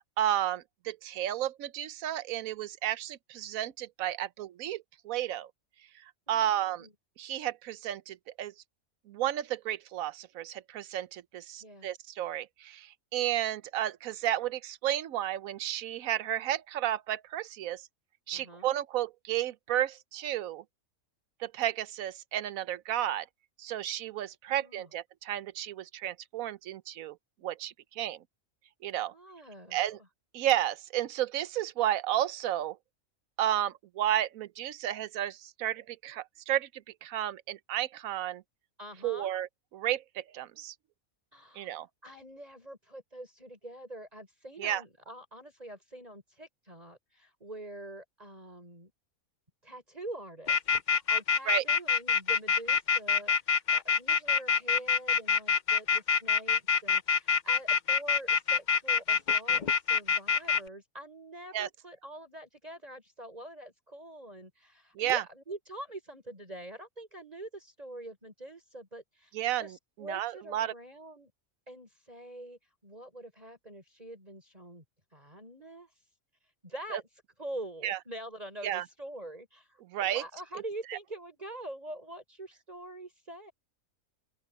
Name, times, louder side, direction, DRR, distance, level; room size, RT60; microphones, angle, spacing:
voice 1, 0.2-5.5 6.3-6.9 7.2-8.5 9.1-17.8 18.3-20.6 21.4-23.3 23.6-27.2 27.4-28.2 28.8-29.1 29.7-30.0 30.3-32.8 33.4-36.7 37.0-38.4 39.0-39.5 39.7-40.7 41.6-41.9 44.6-44.8 51.5-51.6 61.5-61.7 65.0-65.2 69.3-70.7 76.9-77.0 77.8-78.0 78.6-78.8 79.9-80.2 80.9-81.0, right 12 dB, 75° right, 1.1 m, -32 dB
voice 2, 6.3-6.9 11.6-11.9 18.3-18.7 24.5-24.9 29.1-30.0 38.8-39.3 41.3-48.9 49.6-71.3 71.7-74.8 75.1-75.9 76.6-77.0 77.4-83.5, right 1 dB, 25° right, 6.7 m, -45 dB
sound 1, 50.5-60.6, left 6 dB, 45° left, 0.7 m, -25 dB
open air
omnidirectional pair, 1.5 m